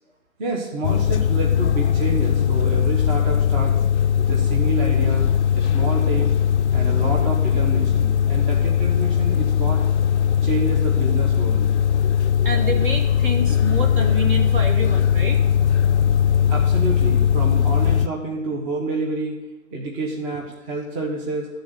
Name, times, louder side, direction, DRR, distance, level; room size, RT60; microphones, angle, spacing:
voice 1, 0.4-3.7 4.2-5.2 5.5-6.4 6.7-9.8 10.4-11.6 16.5-19.3 19.7-21.5, right 2 dB, 25° right, -2 dB, 1.3 m, -28 dB
sound 1, 0.8-18.1, left 8 dB, 60° left, 0.5 m, -19 dB
voice 2, 12.4-15.4, right 1 dB, 40° right, 3 dB, 1.5 m, -28 dB
12.0 x 4.0 x 8.0 m, 1.1 s
figure-of-eight pair, 135°, 40 cm